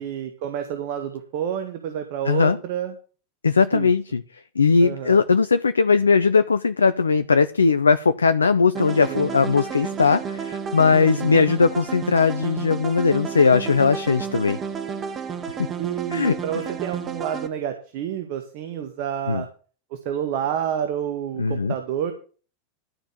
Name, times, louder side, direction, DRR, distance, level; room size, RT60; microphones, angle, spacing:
voice 1, 0.0-2.9 3.7-3.9 4.8-5.2 9.1-9.4 11.0-11.5 15.8-19.5 19.9-22.1, right 9 dB, 50° right, 6 dB, 1.9 m, -29 dB
voice 2, 2.3-2.6 3.4-4.2 4.6-14.6 15.6-15.7 16.1-16.4 19.3-19.4 21.4-21.7, left 5 dB, 80° left, 12 dB, 0.5 m, -19 dB
sound 1, 8.7-17.5, right 6 dB, 30° right, 1.8 m, -32 dB
13.0 x 4.5 x 8.6 m, 0.39 s
figure-of-eight pair, 90°, 0 cm